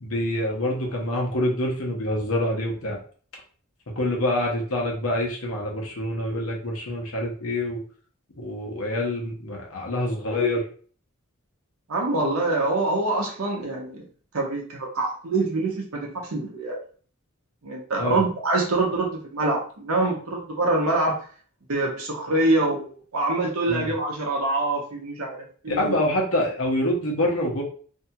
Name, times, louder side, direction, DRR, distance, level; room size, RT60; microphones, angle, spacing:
voice 1, 0.0-3.0 4.0-7.8 8.4-10.6 18.0-18.2 23.7-23.9 25.7-27.6, left 1 dB, 80° left, -1 dB, 0.9 m, -26 dB
voice 2, 11.9-14.1 14.3-16.8 17.6-21.2 21.7-25.4 25.6-25.9, right 2 dB, 80° right, -1 dB, 0.7 m, -25 dB
2.7 x 2.3 x 2.7 m, 0.43 s
head